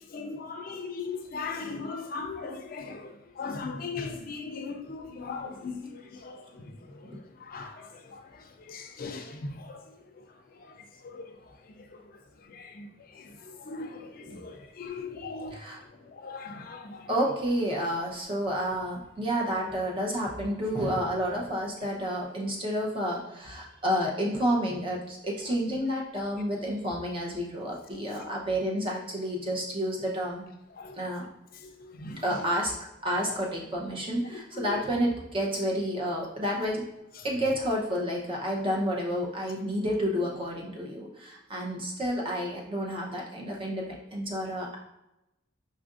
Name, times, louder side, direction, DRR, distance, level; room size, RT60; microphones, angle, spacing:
voice 1, 0.1-6.7 7.4-8.2 8.7-9.8 11.0-11.3 11.9-12.0 12.5-12.9 13.1-13.3 13.6-15.6 16.1-17.1 30.8-30.9 31.8-32.5 33.3-33.4 34.6-34.8, left 4 dB, 50° left, 5 dB, 0.4 m, -38 dB
voice 2, 15.5-15.8 17.1-30.4 31.0-31.3 32.2-32.7 33.0-36.8 37.2-44.8, equal, 25° right, -2 dB, 0.6 m, -30 dB
5.3 x 2.5 x 2.4 m, 0.90 s
head